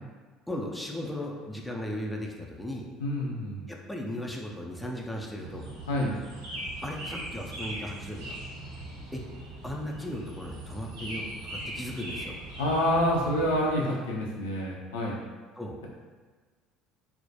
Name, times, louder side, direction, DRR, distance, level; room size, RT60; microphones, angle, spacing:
voice 1, 0.5-2.9 3.7-5.6 6.8-8.4 9.1-9.2 9.6-12.4 15.6-15.9, left 1 dB, 5° left, -1 dB, 0.4 m, -36 dB
voice 2, 3.0-3.7 5.9-6.2 12.6-15.2, left 1 dB, 75° left, -3 dB, 0.4 m, -27 dB
sound 1, 5.4-13.7, right 1 dB, 75° right, 0.7 m, -40 dB
2.2 x 2.1 x 2.7 m, 1.4 s
figure-of-eight pair, 60°, 0 cm